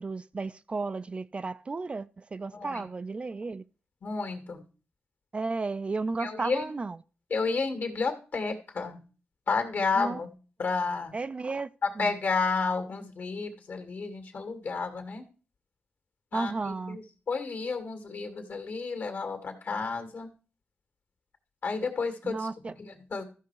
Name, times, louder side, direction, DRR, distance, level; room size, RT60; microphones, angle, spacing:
voice 1, 0.0-3.6 5.3-7.0 10.0-10.2 11.1-11.7 12.0-12.1 16.3-17.0 22.2-22.7, right 3 dB, 30° right, 0.4 m, -33 dB
voice 2, 2.5-2.8 4.0-4.6 6.2-6.7 7.3-9.0 9.5-10.3 10.6-11.2 11.8-15.2 16.3-20.3 21.6-23.2, left 4 dB, 60° left, 2.1 m, -31 dB
14.0 x 5.6 x 4.7 m
cardioid pair, 90°, 4 cm